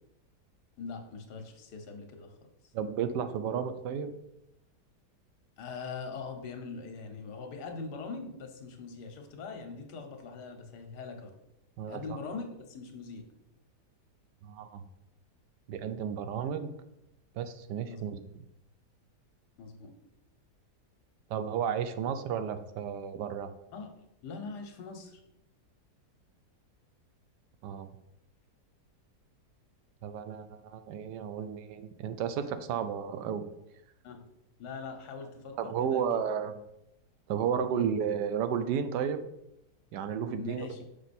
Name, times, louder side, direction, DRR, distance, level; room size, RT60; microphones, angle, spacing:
voice 1, 0.8-2.5 5.6-11.3 11.9-13.2 17.9-18.0 19.6-19.9 23.7-23.9 24.2-25.2 34.0-34.2 34.6-36.2 37.7-37.9 40.3-40.8, left 4 dB, 75° left, 5 dB, 1.5 m, -42 dB
voice 2, 2.7-4.1 11.8-12.0 14.4-14.8 15.7-16.7 17.4-18.2 21.3-23.5 27.6-27.9 30.0-33.4 35.6-36.5 37.3-39.2 39.9-40.7, right 8 dB, 85° right, 10 dB, 1.2 m, -32 dB
6.1 x 5.4 x 4.2 m, 0.86 s
omnidirectional pair, 1.8 m